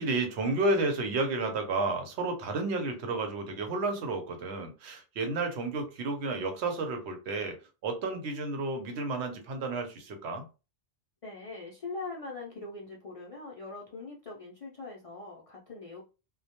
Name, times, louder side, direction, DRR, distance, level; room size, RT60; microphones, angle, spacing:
voice 1, 0.0-7.6 7.8-10.5, right 2 dB, 85° right, 5 dB, 0.9 m, -31 dB
voice 2, 11.2-16.0, left 3 dB, 55° left, -2 dB, 0.4 m, -42 dB
2.2 x 2.1 x 2.8 m, 0.31 s
omnidirectional pair, 1.1 m